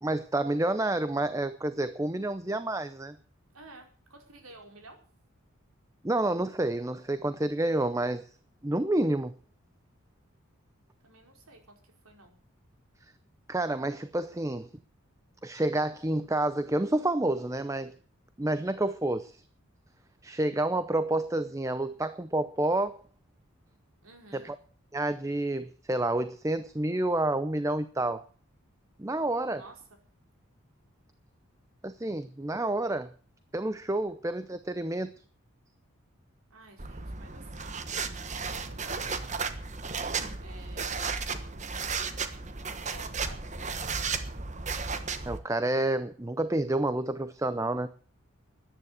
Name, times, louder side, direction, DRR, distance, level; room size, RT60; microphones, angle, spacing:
voice 1, 0.0-3.2 6.0-8.3 8.6-9.3 13.5-14.7 15.4-18.0 18.4-19.4 20.2-23.0 24.3-24.6 24.9-28.2 29.0-29.6 31.8-33.1 33.5-35.1 45.3-47.9, right 1 dB, 15° right, 13 dB, 0.6 m, -29 dB
voice 2, 3.5-5.0 11.0-12.3 24.0-24.5 29.5-29.8 36.5-38.0 38.5-39.1 40.4-41.1 42.6-44.0, right 2 dB, 85° right, 3 dB, 4.7 m, -52 dB
sound 1, 36.8-45.4, right 5 dB, 35° right, 1.3 m, -34 dB
14.0 x 10.0 x 8.2 m, 0.43 s
head